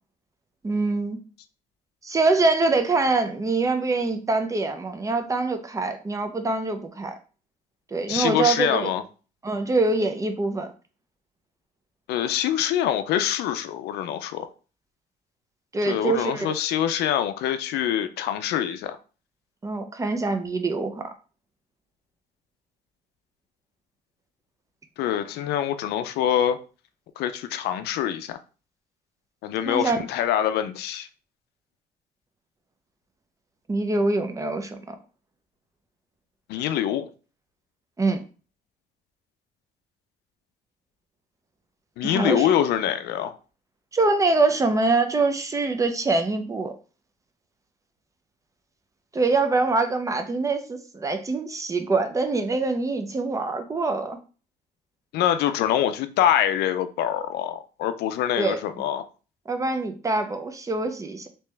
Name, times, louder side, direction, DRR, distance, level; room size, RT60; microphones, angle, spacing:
voice 1, 0.6-1.2 2.0-7.1 7.9-8.9 9.4-10.7 15.7-16.5 19.6-21.1 29.7-30.0 33.7-35.0 38.0-38.2 42.0-42.5 43.9-46.7 49.1-54.2 58.4-58.6 59.5-61.3, right 3 dB, 20° right, 0.6 m, -24 dB
voice 2, 8.1-9.0 12.1-14.5 15.9-19.0 25.0-26.6 27.2-28.4 29.4-31.1 36.5-37.1 42.0-43.4 55.1-59.1, left 10 dB, 75° left, 0.4 m, -25 dB
3.3 x 2.9 x 3.2 m
cardioid pair, 110°, 17 cm